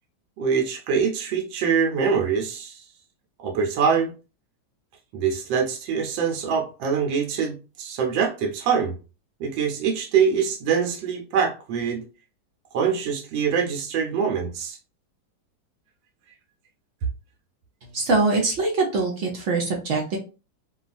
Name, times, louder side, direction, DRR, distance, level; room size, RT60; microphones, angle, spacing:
voice 1, 0.4-2.8 3.4-4.1 5.1-8.9 9.4-12.0 12.7-14.8, right 6 dB, 90° right, 1.4 m, -24 dB
voice 2, 17.9-20.2, right 3 dB, 65° right, 0.7 m, -23 dB
3.0 x 2.3 x 2.4 m
omnidirectional pair, 2.0 m